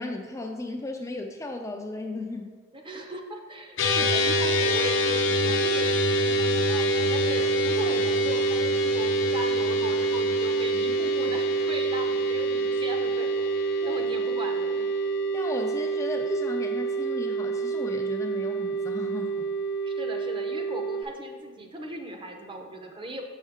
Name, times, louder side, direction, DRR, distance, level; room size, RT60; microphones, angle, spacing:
voice 1, 0.0-2.5 13.8-14.0 15.3-19.5, left 2 dB, 15° left, 2 dB, 0.3 m, -35 dB
voice 2, 2.7-14.9 19.8-23.2, right 1 dB, 25° right, 3 dB, 0.7 m, -38 dB
sound 1, 3.8-21.0, right 2 dB, 75° left, 0.8 m, -26 dB
6.4 x 5.4 x 3.5 m, 1.4 s
head